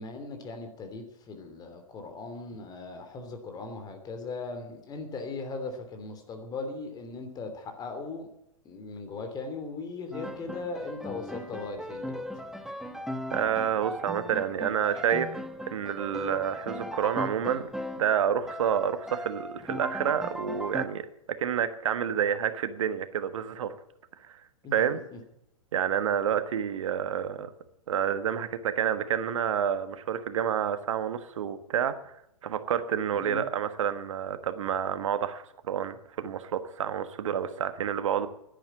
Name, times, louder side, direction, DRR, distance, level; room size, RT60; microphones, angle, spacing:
voice 1, 0.0-8.3 8.6-12.2 24.6-25.0 33.2-33.4, left 3 dB, 20° left, 6 dB, 2.9 m, -38 dB
Piano, 10.1-18.2 18.5-20.9, equal, ahead, 1.1 m, -38 dB
voice 2, 13.3-17.7 18.0-23.7 24.2-24.4 24.7-25.0 25.7-27.5 27.9-32.1 32.4-38.3, right 8 dB, 60° right, 11 dB, 1.4 m, -29 dB
10.5 x 10.5 x 9.3 m, 0.80 s
figure-of-eight pair, 110°, 18 cm